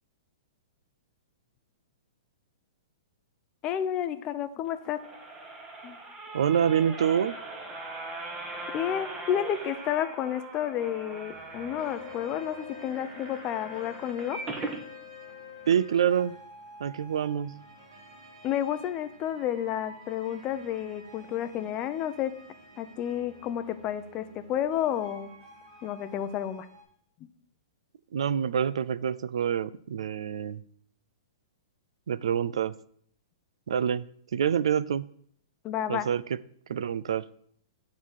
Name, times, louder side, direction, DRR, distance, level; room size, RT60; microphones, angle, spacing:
voice 1, 3.6-5.0 5.8-6.0 8.7-14.4 18.4-22.3 22.8-25.3 25.8-26.7 35.6-36.0, left 10 dB, 30° left, 0.6 m, -31 dB
sound 1, 4.7-14.8 15.3-15.4 15.7-15.8, right 2 dB, 20° right, 1.3 m, -40 dB
voice 2, 6.3-7.4 15.7-16.3 16.8-17.5 28.1-30.6 32.1-32.7 33.7-34.1 34.3-35.0 35.9-36.4 36.7-37.2, right 8 dB, 80° right, 0.3 m, -26 dB
sound 2, 11.2-26.8, right 1 dB, 45° right, 3.6 m, -52 dB
Wind instrument woodwind instrument, 11.7-16.5, left 11 dB, 70° left, 1.3 m, -47 dB
9.1 x 3.9 x 6.4 m
hypercardioid pair, 135°, 3 cm